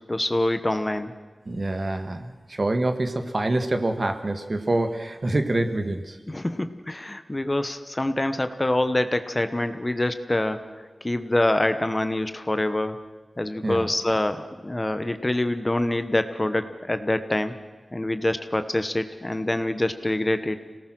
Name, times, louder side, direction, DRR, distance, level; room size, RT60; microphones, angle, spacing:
voice 1, 0.1-1.1 6.3-13.0 13.4-17.5 17.9-20.6, left 1 dB, 25° left, 10 dB, 1.1 m, -25 dB
voice 2, 1.4-6.2 13.6-13.9, right 2 dB, 45° right, 7 dB, 1.7 m, -26 dB
27.0 x 18.0 x 6.3 m, 1.3 s
wide cardioid pair, 75°, 0 cm